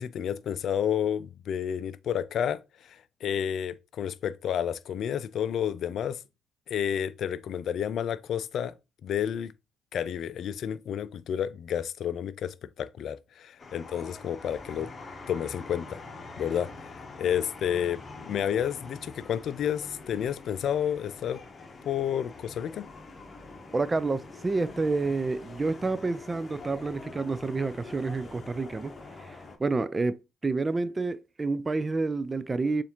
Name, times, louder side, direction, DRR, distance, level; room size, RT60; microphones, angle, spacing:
voice 1, 0.0-3.0 3.2-6.2 6.7-8.7 9.0-9.5 9.9-14.9 15.3-16.0 16.4-16.9 17.2-21.4 21.9-22.9, left 9 dB, 60° left, 0.3 m, -30 dB
sound 1, 13.6-29.6, left 3 dB, 35° left, 0.9 m, -45 dB
voice 2, 23.7-32.8, right 3 dB, 25° right, 0.3 m, -29 dB
6.8 x 2.5 x 2.9 m
hypercardioid pair, 50°, 0 cm